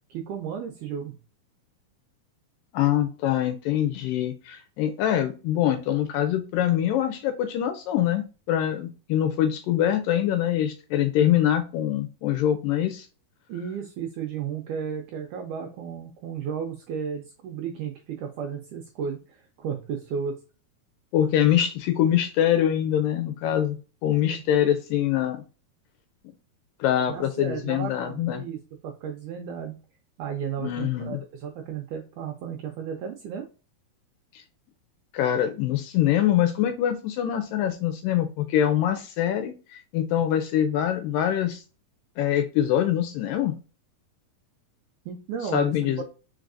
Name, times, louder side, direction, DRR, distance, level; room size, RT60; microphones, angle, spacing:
voice 1, 0.1-1.1 13.5-20.4 24.2-24.4 27.1-29.7 30.2-33.5 45.1-46.0, right 7 dB, 80° right, 3 dB, 1.8 m, -34 dB
voice 2, 2.7-13.1 21.1-25.4 26.8-28.4 30.6-31.2 35.1-41.6 42.2-43.5 45.5-46.0, left 11 dB, 80° left, 8 dB, 2.1 m, -24 dB
4.7 x 4.4 x 2.5 m, 0.34 s
omnidirectional pair, 4.3 m